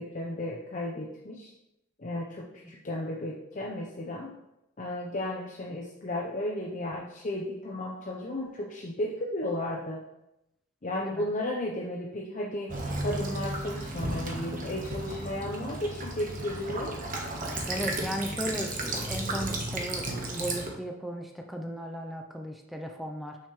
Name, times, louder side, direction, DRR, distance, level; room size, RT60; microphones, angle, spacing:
voice 1, 0.0-1.5 2.0-4.3 4.8-10.0 10.8-16.9, left 1 dB, 40° left, -2 dB, 0.7 m, -34 dB
Child speech kid speaking / Bird vocalization bird call bird song / Stream, 12.7-20.7, right 2 dB, 45° right, 1.1 m, -34 dB
voice 2, 17.7-23.4, equal, ahead, 3 dB, 0.5 m, -36 dB
6.5 x 6.1 x 3.1 m, 0.87 s
head